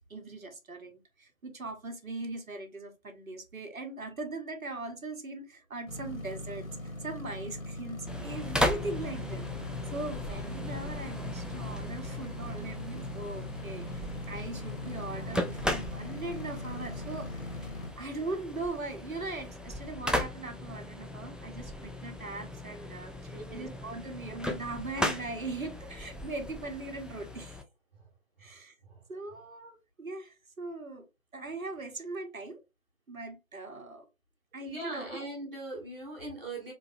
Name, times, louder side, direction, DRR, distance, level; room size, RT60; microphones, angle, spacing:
voice 1, 0.1-6.7 7.0-17.5 18.0-27.6 28.4-28.8 29.1-31.0 31.3-32.6 33.1-34.1 34.5-35.1, right 2 dB, 80° right, 1.3 m, -40 dB
sound 1, 5.9-17.9, left 1 dB, 75° left, 1.1 m, -40 dB
sound 2, 8.1-27.6, left 1 dB, ahead, 0.3 m, -37 dB
voice 2, 23.3-23.8 27.9-28.1 28.4-28.5 28.8-29.0 34.6-36.7, right 2 dB, 35° right, 1.3 m, -41 dB
3.5 x 3.2 x 2.7 m
figure-of-eight pair, 170°, 41 cm